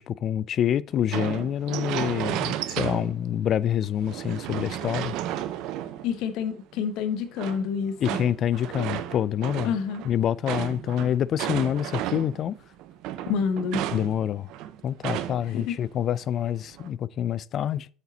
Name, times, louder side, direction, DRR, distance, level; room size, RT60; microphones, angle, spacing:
voice 1, 0.0-5.2 8.0-9.7 10.0-12.5 13.9-14.5 14.8-17.9, left 10 dB, 50° left, 0.3 m, -27 dB
sound 1, 1.1-3.4 3.8-6.4 7.4-12.5 12.8-15.6 15.9-16.0 16.5-16.9, right 12 dB, 70° right, 0.5 m, -33 dB
voice 2, 6.0-8.2 9.6-10.0 13.3-13.9 15.5-15.7, left 6 dB, 70° left, 0.8 m, -28 dB
8.0 x 4.4 x 3.9 m
supercardioid pair, 90°, 0 cm